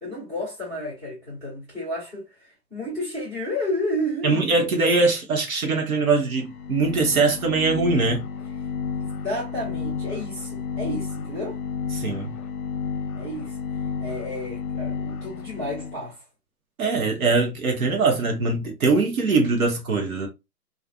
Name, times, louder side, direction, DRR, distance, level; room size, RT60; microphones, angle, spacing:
voice 1, 0.0-4.6 9.0-11.6 13.1-13.6 14.0-16.2, left 1 dB, 5° right, 0.8 m, -31 dB
voice 2, 4.2-8.2 12.0-12.3 16.8-20.3, right 3 dB, 60° right, 0.9 m, -22 dB
sound 1, 6.4-16.1, left 5 dB, 65° left, 0.6 m, -31 dB
2.4 x 2.4 x 2.2 m
hypercardioid pair, 150°, 50 cm